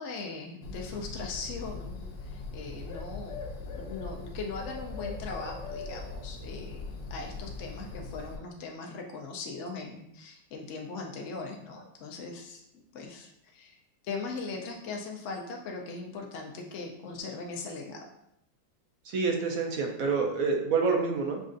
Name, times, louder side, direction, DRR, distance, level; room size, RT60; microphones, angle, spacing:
voice 1, 0.0-13.8 14.0-18.1, left 4 dB, 70° left, 0 dB, 0.7 m, -40 dB
Bird, 0.6-8.4, left 3 dB, 85° left, 1.3 m, -40 dB
voice 2, 19.0-21.4, right 4 dB, 65° right, 2 dB, 0.9 m, -27 dB
6.2 x 2.4 x 2.5 m, 0.77 s
omnidirectional pair, 1.9 m